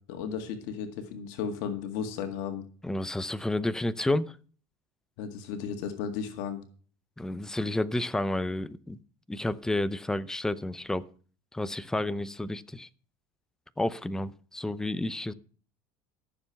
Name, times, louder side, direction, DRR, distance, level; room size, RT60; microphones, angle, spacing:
voice 1, 0.0-2.6 5.2-6.6, left 7 dB, 75° left, 7 dB, 1.9 m, -34 dB
voice 2, 2.8-4.3 7.2-9.0 9.3-11.1 11.5-12.9 13.8-15.3, left 1 dB, 5° left, 15 dB, 0.6 m, -30 dB
14.0 x 7.1 x 5.8 m, 0.41 s
supercardioid pair, 130°, 10 cm